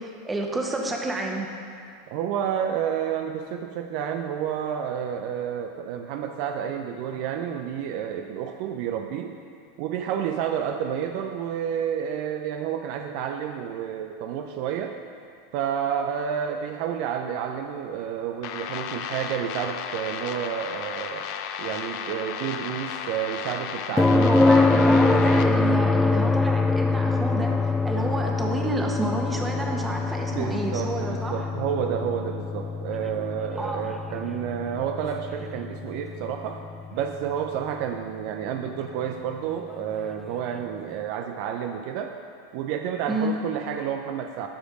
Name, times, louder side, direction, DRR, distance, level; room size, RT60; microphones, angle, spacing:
voice 1, 0.0-1.5 24.1-31.5 33.6-33.9 43.1-43.4, right 2 dB, 15° right, 1 dB, 1.3 m, -29 dB
voice 2, 2.1-9.3 9.8-15.0 15.5-21.3 21.6-24.3 30.3-36.6 36.9-42.1 42.5-44.5, right 9 dB, 55° right, 4 dB, 0.5 m, -30 dB
sound 1, 18.4-25.4, left 8 dB, 55° left, 0.6 m, -34 dB
sound 2, 24.0-37.8 40.1-40.2, left 3 dB, 10° left, 0.4 m, -24 dB
12.0 x 5.1 x 5.2 m, 2.3 s
hypercardioid pair, 90°, 0 cm